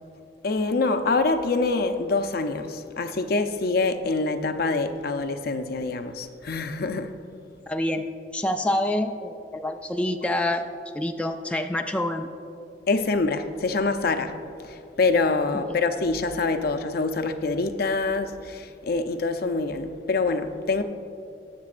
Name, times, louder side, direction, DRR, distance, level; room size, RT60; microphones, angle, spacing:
voice 1, 0.4-7.2 12.9-20.8, left 3 dB, 60° left, 0.6 m, -25 dB
voice 2, 7.7-10.7 10.9-12.3 15.5-15.8, left 1 dB, 5° left, 0.3 m, -27 dB
19.0 x 6.9 x 2.5 m
head